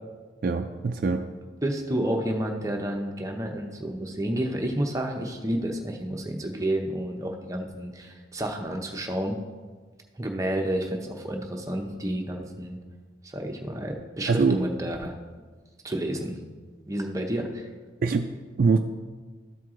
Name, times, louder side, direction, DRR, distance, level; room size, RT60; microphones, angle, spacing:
voice 1, 0.4-1.2 14.3-14.6 18.0-18.3 18.6-18.8, right 4 dB, 50° right, 4 dB, 0.3 m, -23 dB
voice 2, 1.6-9.4 10.2-12.8 13.2-15.1 15.8-16.3 16.9-17.7, right 1 dB, 15° right, 2 dB, 0.7 m, -30 dB
13.0 x 4.6 x 3.7 m, 1.4 s
head